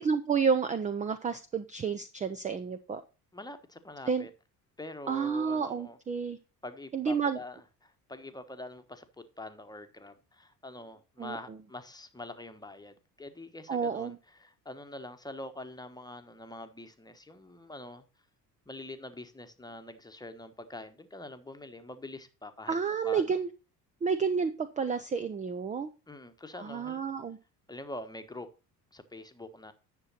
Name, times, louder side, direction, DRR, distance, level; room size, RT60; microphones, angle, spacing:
voice 1, 0.0-3.0 4.1-4.3 5.1-6.4 6.9-7.4 11.2-11.4 13.7-14.2 22.7-23.5 24.0-25.9 26.6-27.4, right 6 dB, 15° right, 0.5 m, -30 dB
voice 2, 3.3-4.3 4.8-6.0 6.6-18.0 18.7-22.8 23.0-23.4 26.1-27.0 27.7-28.5 28.9-29.7, left 2 dB, 10° left, 1.2 m, -45 dB
10.0 x 6.9 x 4.1 m
figure-of-eight pair, 55°, 48 cm